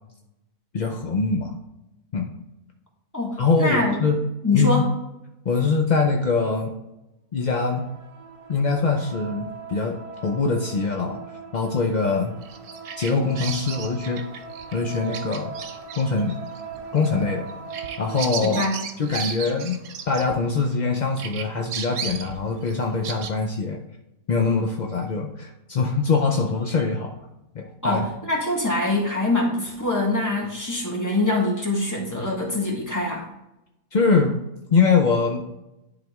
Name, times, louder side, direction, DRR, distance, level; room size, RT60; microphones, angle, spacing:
voice 1, 0.7-1.5 2.1-2.3 3.4-4.2 4.5-4.8 5.4-6.7 7.3-7.9 8.5-10.0 10.2-11.2 11.5-12.3 13.0-14.2 14.7-15.5 15.9-16.4 16.9-17.5 18.0-18.6 19.0-19.8 20.1-23.8 24.3-27.2 27.5-28.0 33.9-34.4 34.7-35.4, left 4 dB, 50° left, 2 dB, 0.5 m, -23 dB
voice 2, 3.1-4.0 4.4-4.9 18.4-18.8 27.8-33.3, left 2 dB, 15° left, -2 dB, 1.5 m, -24 dB
sound 1, 7.4-18.3, right 5 dB, 60° right, 0.3 m, -40 dB
Bird vocalization bird call bird song, 12.4-20.8 21.2-23.3, right 7 dB, 80° right, 1.1 m, -35 dB
10.5 x 4.2 x 3.5 m, 0.90 s
omnidirectional pair, 1.5 m